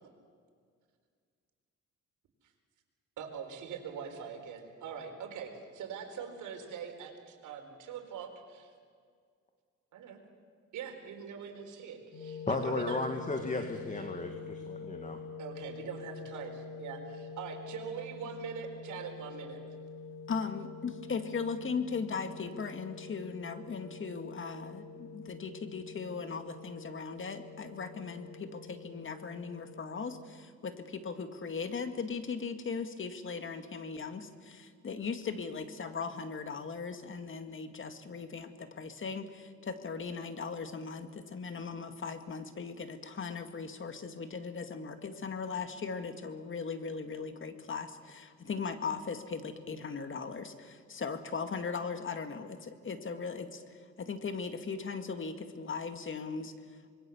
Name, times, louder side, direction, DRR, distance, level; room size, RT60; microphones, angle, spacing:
voice 1, 3.2-7.1 7.4-8.7 9.9-10.2 10.7-13.0 15.4-16.5 16.8-17.0 17.4-19.6, right 7 dB, 80° right, 4 dB, 4.3 m, -42 dB
sound 1, 12.1-30.2, left 4 dB, 75° left, 6.2 m, -46 dB
voice 2, 12.5-15.2, left 3 dB, 25° left, 5 dB, 2.1 m, -34 dB
voice 3, 20.3-57.0, left 5 dB, 40° left, 8 dB, 2.0 m, -38 dB
26.0 x 21.5 x 7.2 m, 2.1 s
cardioid pair, 90°, 30 cm